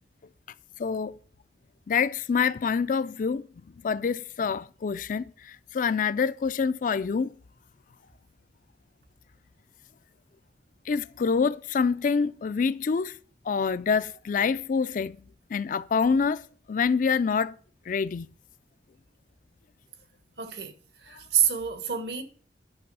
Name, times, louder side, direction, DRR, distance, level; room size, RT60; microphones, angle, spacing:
voice 1, 0.8-1.1 1.9-3.5 3.8-7.3 10.9-13.2 13.5-15.2 15.5-16.4 16.7-17.5 17.9-18.3, left 5 dB, 50° left, 0.4 m, -26 dB
voice 2, 20.4-20.7 21.0-22.2, right 9 dB, 70° right, 1.3 m, -27 dB
10.0 x 6.1 x 5.4 m
head